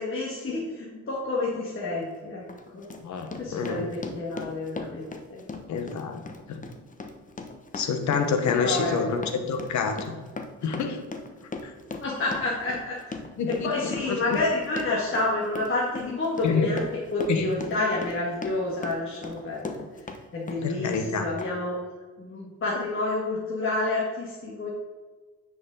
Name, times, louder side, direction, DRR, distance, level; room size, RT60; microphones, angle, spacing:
voice 1, 0.0-2.4 2.7-2.8 3.4-5.5 8.5-9.3 12.0-13.0 13.6-16.8 17.1-19.8 20.3-21.8 22.2-24.7, left 2 dB, 45° left, -5 dB, 1.9 m, -29 dB
Run, 1.9-2.0 2.5-20.2 20.5-21.1 21.4-21.5, left 3 dB, 25° left, 1.0 m, -38 dB
voice 2, 3.0-3.9 5.7-6.6 7.7-10.2 10.6-11.0 11.6-11.7 13.4-14.4 16.4-16.7 17.3-17.5 20.6-21.3, left 5 dB, 70° left, 6 dB, 1.3 m, -28 dB
9.6 x 5.3 x 4.0 m, 1.3 s
cardioid pair, 90°, 30 cm